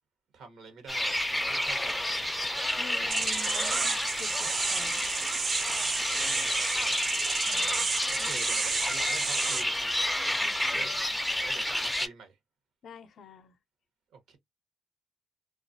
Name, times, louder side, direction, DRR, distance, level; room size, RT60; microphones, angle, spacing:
voice 1, 0.3-1.2 1.5-2.2 6.2-7.1 8.1-9.9 10.7-11.0 11.4-12.4 14.1-14.4, right 5 dB, 80° right, 0.9 m, -47 dB
sound 1, 0.9-12.1, left 1 dB, 5° left, 0.4 m, -30 dB
voice 2, 2.8-5.1 7.5-7.9 8.2-8.3 10.4-11.2 12.8-13.5, left 6 dB, 65° left, 0.4 m, -47 dB
sound 2, 3.1-9.6, right 6 dB, 55° right, 0.4 m, -32 dB
2.4 x 2.3 x 2.5 m
cardioid pair, 90°, 0 cm